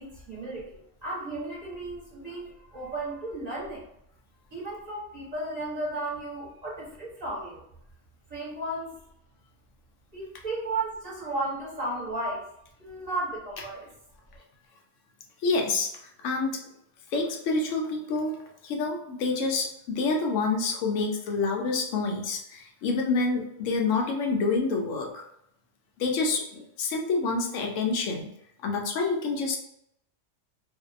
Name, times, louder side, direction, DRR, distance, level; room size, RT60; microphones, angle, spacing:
voice 1, 0.0-3.9 4.5-7.6 8.3-9.0 10.1-12.5 12.8-13.9, right 2 dB, 35° right, -6 dB, 0.9 m, -34 dB
voice 2, 15.4-16.6 17.1-25.2 26.0-28.3 28.6-29.6, left 3 dB, 85° left, 1 dB, 0.9 m, -28 dB
2.5 x 2.1 x 2.4 m, 0.75 s
omnidirectional pair, 1.3 m